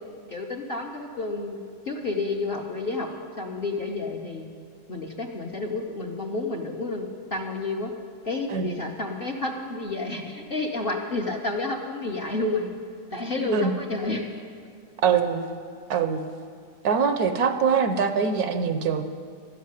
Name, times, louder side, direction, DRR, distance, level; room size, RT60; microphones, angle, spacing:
voice 1, 0.3-1.6 1.9-3.1 3.4-4.5 4.9-7.9 8.2-12.7 13.1-14.2, left 3 dB, 45° left, 0 dB, 0.8 m, -30 dB
voice 2, 13.4-13.7 15.0-15.4 15.9-16.3 16.8-19.0, right 6 dB, 70° right, 8 dB, 1.1 m, -23 dB
12.0 x 7.4 x 9.6 m, 2.2 s
omnidirectional pair, 1.8 m